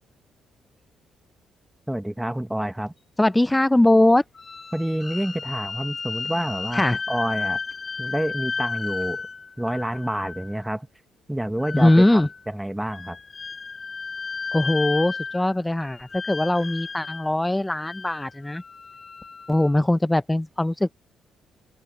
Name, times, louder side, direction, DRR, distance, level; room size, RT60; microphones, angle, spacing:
voice 1, 1.9-2.9 4.7-7.6 8.0-9.2 9.6-10.9 11.3-13.2, right 1 dB, 5° right, 1.3 m, -28 dB
voice 2, 3.2-4.2 6.7-7.0 11.7-12.3 14.5-18.6 19.5-20.9, left 1 dB, 10° left, 0.7 m, -20 dB
sound 1, 4.3-10.6 11.6-12.4 12.9-15.5 15.8-17.3 17.8-19.8, left 4 dB, 35° left, 3.8 m, -33 dB
open air
cardioid pair, 90°, 0 cm